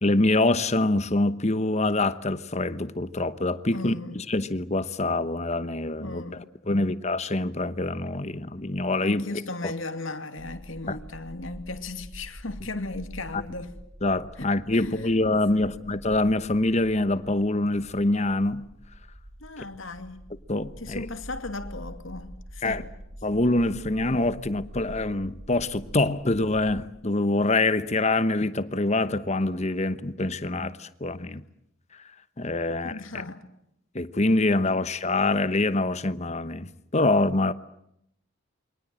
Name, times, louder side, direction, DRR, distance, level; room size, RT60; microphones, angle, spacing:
voice 1, 0.0-6.2 6.7-9.3 9.6-9.7 10.9-11.0 14.0-18.6 20.5-21.1 22.6-22.8 23.2-31.4 32.4-32.9 33.9-37.5, left 2 dB, 35° left, 1.0 m, -25 dB
voice 2, 3.7-4.2 6.0-7.0 9.0-13.8 14.4-14.5 14.7-15.8 19.4-20.3 20.8-22.9 32.7-33.5, left 2 dB, 70° left, 2.5 m, -37 dB
sound 1, 10.4-26.8, right 1 dB, 60° right, 5.5 m, -45 dB
28.0 x 24.0 x 7.7 m
head